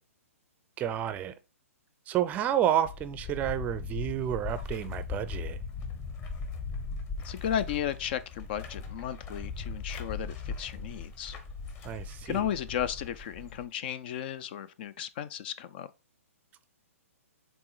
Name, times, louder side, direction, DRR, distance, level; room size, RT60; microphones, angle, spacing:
voice 1, 0.8-1.3 2.1-5.6 11.8-12.5, right 11 dB, 20° right, 0.5 m, -30 dB
sound 1, 2.8-13.6, left 4 dB, 25° left, 1.3 m, -39 dB
voice 2, 7.2-11.4 12.3-15.9, left 9 dB, 45° left, 0.5 m, -34 dB
6.1 x 3.9 x 4.7 m
hypercardioid pair, 140°, 8 cm